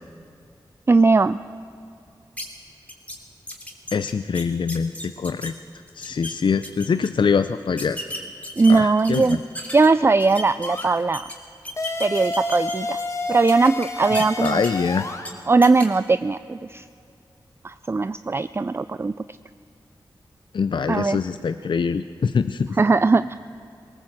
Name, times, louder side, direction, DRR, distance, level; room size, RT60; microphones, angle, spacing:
voice 1, 0.9-1.4 8.6-9.4 9.7-11.2 12.0-13.0 13.3-14.6 15.5-16.8 17.6-19.1 20.9-21.2 22.8-23.4, right 3 dB, 30° right, 14 dB, 0.4 m, -19 dB
sound 1, 2.4-2.5 2.9-3.2 3.5-5.5 5.9-6.3 6.6-7.1 7.8-9.9 10.2-11.3 11.6-13.1 13.5-14.9 15.2-15.3 15.6-15.9, left 1 dB, 15° left, 3.0 m, -34 dB
voice 2, 3.9-5.5 6.0-8.0 8.7-9.4 14.4-15.1 20.5-22.8, left 5 dB, 65° left, 11 dB, 0.5 m, -24 dB
sound 2, 10.6-10.9 11.8-15.3, left 1 dB, 35° left, 1.9 m, -29 dB
19.0 x 18.0 x 7.7 m, 2.5 s
cardioid pair, 55°, 9 cm